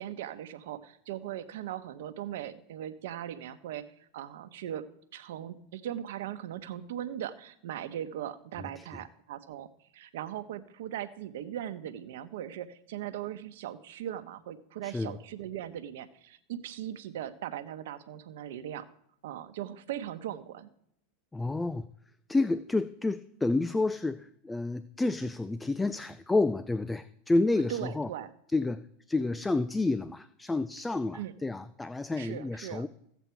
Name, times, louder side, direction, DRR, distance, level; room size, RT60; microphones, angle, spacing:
voice 1, 0.0-4.8 5.1-9.7 9.9-18.9 19.2-20.7 27.7-28.3 31.1-31.3 32.2-32.8, right 11 dB, 75° right, 12 dB, 1.0 m, -39 dB
voice 2, 21.3-21.9 22.3-28.1 28.5-28.8 29.1-32.9, left 2 dB, 10° left, 14 dB, 0.4 m, -29 dB
15.0 x 8.1 x 4.6 m, 0.73 s
hypercardioid pair, 105°, 0 cm